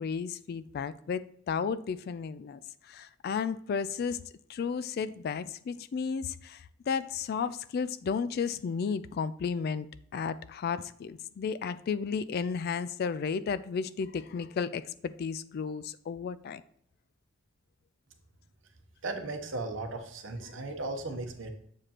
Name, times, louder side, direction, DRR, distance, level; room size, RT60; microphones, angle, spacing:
voice 1, 0.0-2.6 2.9-4.2 4.5-6.6 6.9-9.9 10.1-16.6 20.5-20.6, left 6 dB, 50° left, 15 dB, 0.3 m, -33 dB
voice 2, 19.0-21.5, right 2 dB, 70° right, 5 dB, 0.9 m, -36 dB
7.5 x 4.9 x 2.9 m, 0.67 s
head